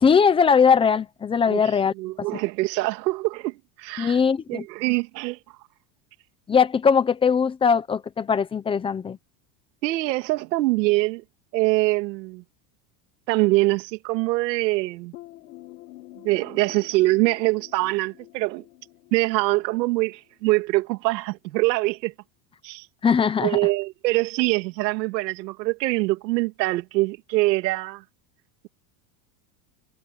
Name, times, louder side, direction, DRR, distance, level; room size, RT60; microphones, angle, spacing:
voice 1, 0.0-2.4 4.0-4.6 6.5-9.2 23.0-23.6, left 6 dB, 10° left, 0.8 m, -20 dB
voice 2, 2.0-4.2 4.5-5.4 9.8-11.2 11.5-12.4 13.3-15.1 16.2-18.6 19.1-22.1 22.6-22.9 23.4-28.0, right 21 dB, 80° right, 2.7 m, -24 dB
sound 1, 15.1-20.7, left 16 dB, 85° left, 6.4 m, -47 dB
supercardioid pair, 160°, 50 cm